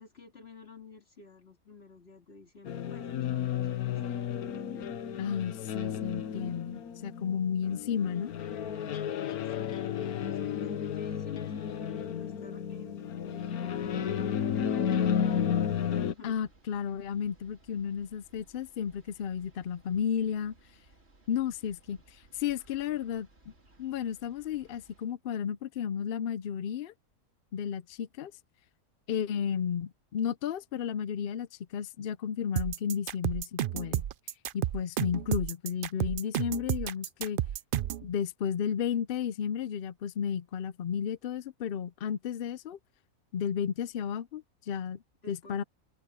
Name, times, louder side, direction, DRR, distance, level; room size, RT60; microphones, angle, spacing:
voice 1, 0.0-4.2 4.6-4.9 8.8-14.6 15.7-16.4 45.2-45.6, left 5 dB, 45° left, 2.5 m, -52 dB
sound 1, 2.6-16.1, left 8 dB, 90° left, 1.4 m, -32 dB
voice 2, 5.2-8.3 16.2-20.5 21.3-23.3 23.8-26.9 27.5-28.3 29.1-34.0 34.5-37.4 38.0-42.8 43.3-45.6, left 8 dB, 65° left, 0.5 m, -33 dB
sound 2, 13.8-25.1, right 2 dB, 45° right, 3.3 m, -61 dB
sound 3, 32.6-38.1, right 11 dB, 85° right, 0.4 m, -31 dB
omnidirectional pair, 1.5 m